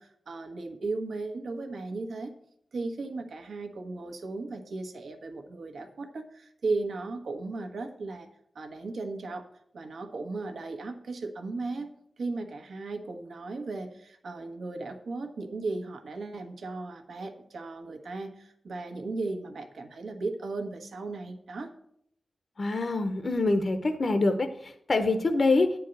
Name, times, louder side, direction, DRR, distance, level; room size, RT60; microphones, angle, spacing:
voice 1, 0.0-2.3 2.7-8.3 8.5-9.4 9.7-11.9 12.2-21.7, right 3 dB, 85° right, 5 dB, 1.2 m, -36 dB
voice 2, 22.6-25.8, left 2 dB, 40° left, 7 dB, 0.6 m, -25 dB
9.9 x 4.6 x 7.9 m, 0.71 s
wide cardioid pair, 150°, 0 cm